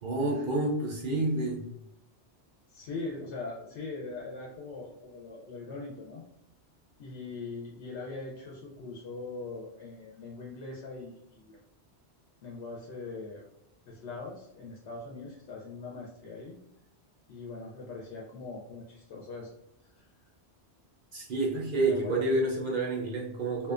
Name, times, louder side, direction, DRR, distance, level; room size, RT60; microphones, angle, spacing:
voice 1, 0.0-1.7 21.1-23.7, right 2 dB, 60° right, -2 dB, 0.6 m, -29 dB
voice 2, 2.7-6.2 7.0-11.6 12.4-13.4 13.9-16.6 17.3-19.5 19.8-20.1 21.8-22.3, left 3 dB, 85° left, -2 dB, 0.9 m, -41 dB
2.6 x 2.2 x 2.3 m, 0.80 s
omnidirectional pair, 1.1 m